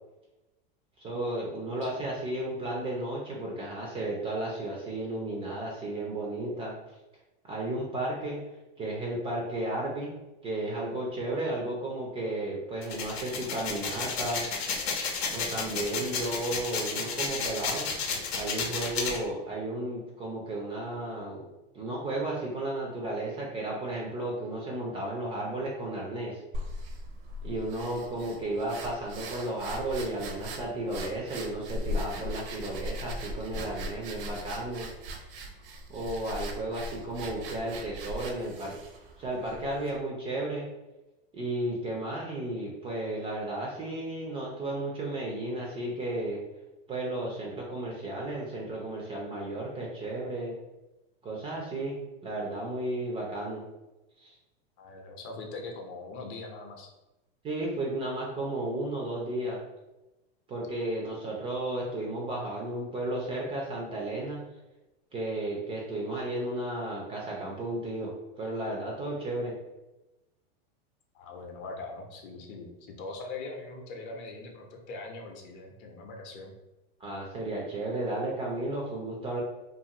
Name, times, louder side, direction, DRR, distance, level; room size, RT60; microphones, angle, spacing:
voice 1, 1.0-6.8 7.4-8.4 8.8-10.1 10.4-14.4 15.3-17.9 18.3-21.5 21.7-26.4 27.4-34.9 35.9-38.8 39.2-40.7 41.3-46.4 46.9-50.5 51.2-52.0 52.2-53.6 54.2-54.4 57.4-59.6 60.5-64.4 65.1-69.6 77.0-79.4, right 1 dB, 20° right, -2 dB, 0.3 m, -33 dB
sound 1, 12.8-19.2, left 5 dB, 90° left, 0.7 m, -32 dB
sound 2, 26.5-40.0, left 1 dB, 65° right, 0.6 m, -39 dB
voice 2, 54.8-56.9 61.1-61.4 71.1-76.5, left 3 dB, 40° left, 1 dB, 0.6 m, -42 dB
2.5 x 2.4 x 2.8 m, 1.0 s
supercardioid pair, 130°, 31 cm